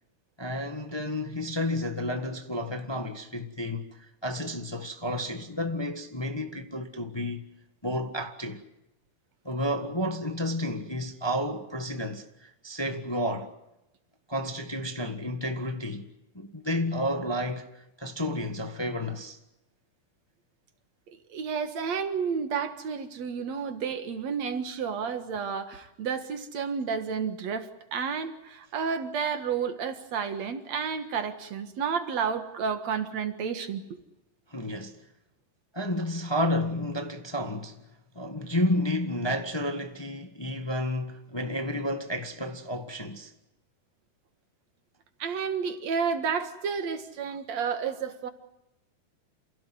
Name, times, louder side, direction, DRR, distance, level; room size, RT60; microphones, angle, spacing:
voice 1, 0.4-7.4 7.8-8.6 9.4-13.5 14.3-16.1 16.3-19.4 34.5-35.0 35.7-37.8 38.1-43.3, left 1 dB, 25° left, 0.5 m, -31 dB
voice 2, 21.3-33.8 45.2-48.3, right 6 dB, 60° right, 2.8 m, -31 dB
29.0 x 16.5 x 9.6 m
omnidirectional pair, 3.7 m